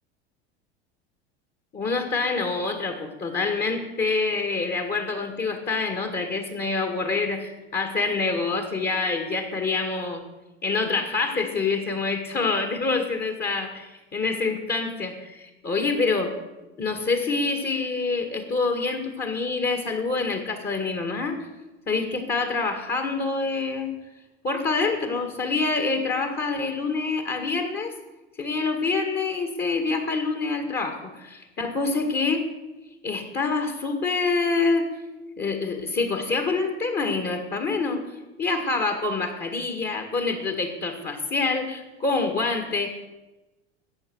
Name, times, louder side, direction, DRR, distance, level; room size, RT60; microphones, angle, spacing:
voice 1, 1.7-10.2 10.6-16.3 16.8-21.4 21.9-24.0 24.4-27.9 28.4-32.5 33.0-34.9 35.4-38.1 38.4-43.1, left 3 dB, 30° left, 6 dB, 2.0 m, -26 dB
14.0 x 8.6 x 6.3 m, 1.1 s
hypercardioid pair, 90°, 33 cm